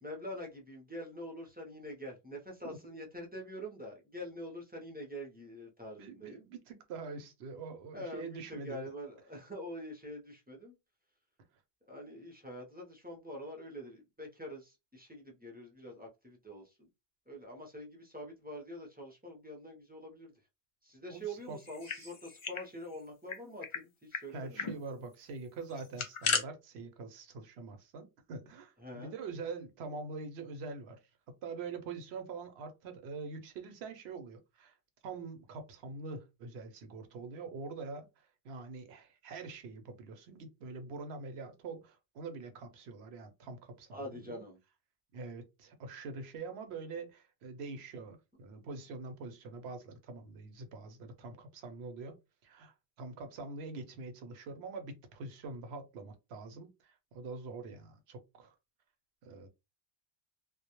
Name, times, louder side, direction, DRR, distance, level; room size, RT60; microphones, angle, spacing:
voice 1, 0.0-6.4 7.9-10.7 11.9-16.9 17.3-20.3 20.8-24.8 28.8-29.2 43.9-44.6, equal, 15° right, 0.4 m, -45 dB
voice 2, 6.0-8.9 21.1-22.1 24.3-31.0 31.3-34.8 35.0-44.4 45.1-52.2 52.4-58.5 59.2-59.5, right 4 dB, 85° right, 0.9 m, -44 dB
sound 1, 21.6-22.7 22.9-23.0 23.3-23.8 24.1-24.2 24.6-24.8 25.7-26.4, left 5 dB, 55° left, 0.3 m, -35 dB
2.2 x 2.0 x 2.9 m
omnidirectional pair, 1.1 m